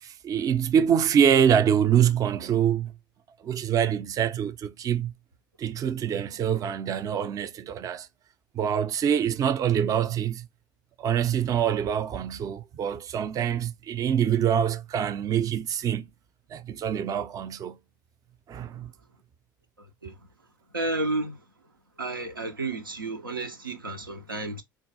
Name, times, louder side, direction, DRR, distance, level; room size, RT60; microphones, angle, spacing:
voice 1, 0.0-2.9 3.4-5.1 5.6-8.1 8.5-10.5 11.0-16.1 16.5-17.8 18.5-18.9, right 8 dB, 35° right, 0.4 m, -25 dB
voice 2, 20.7-21.4 22.0-24.6, right 2 dB, 90° right, 0.5 m, -31 dB
3.8 x 2.3 x 2.6 m
figure-of-eight pair, 65°, 11 cm